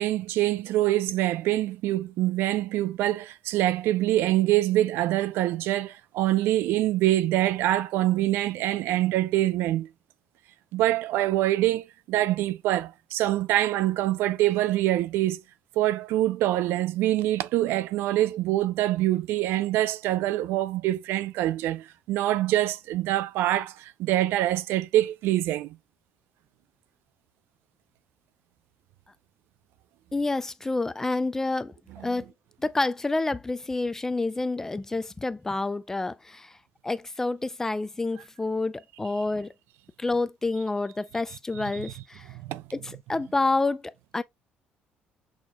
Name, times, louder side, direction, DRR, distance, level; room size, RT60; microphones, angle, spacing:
voice 1, 0.0-9.9 10.7-15.4 15.8-25.8 32.0-32.1 41.7-41.9 42.3-42.6, right 14 dB, 80° right, 0.4 m, -25 dB
voice 2, 30.1-31.7 32.0-32.3 32.6-36.6 36.8-39.5 40.0-42.3 42.7-44.2, left 3 dB, 10° left, 0.3 m, -28 dB
6.3 x 2.9 x 2.2 m
cardioid pair, 135°, 4 cm